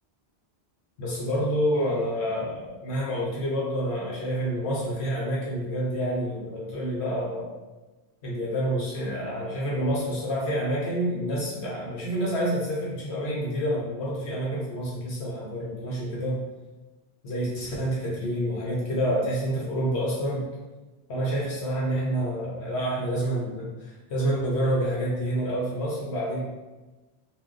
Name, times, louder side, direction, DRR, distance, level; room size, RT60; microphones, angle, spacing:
voice 1, 1.0-7.5 8.2-16.4 17.2-20.5 21.1-26.4, equal, 80° left, -5 dB, 1.0 m, -28 dB
2.6 x 2.1 x 3.6 m, 1.2 s
omnidirectional pair, 1.1 m